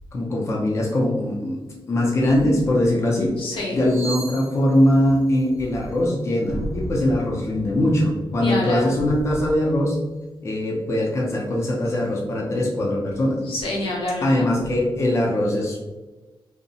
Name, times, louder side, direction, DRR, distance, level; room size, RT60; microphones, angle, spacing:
voice 1, 0.1-1.6 1.9-3.3 3.7-10.0 10.4-13.4 14.2-16.0, left 1 dB, 30° left, -2 dB, 0.4 m, -21 dB
sound 1, 1.8-1.9 2.1-2.6 3.5-6.6 8.9-9.2 10.0-10.3 10.7-12.2, right 3 dB, 5° right, 0.7 m, -42 dB
voice 2, 3.4-3.8 8.4-9.0 13.4-14.5, left 2 dB, 90° left, -2 dB, 0.7 m, -27 dB
sound 2, 6.5-10.4, equal, 80° right, 0.6 m, -36 dB
2.7 x 2.0 x 2.6 m, 1.2 s
wide cardioid pair, 165°, 9 cm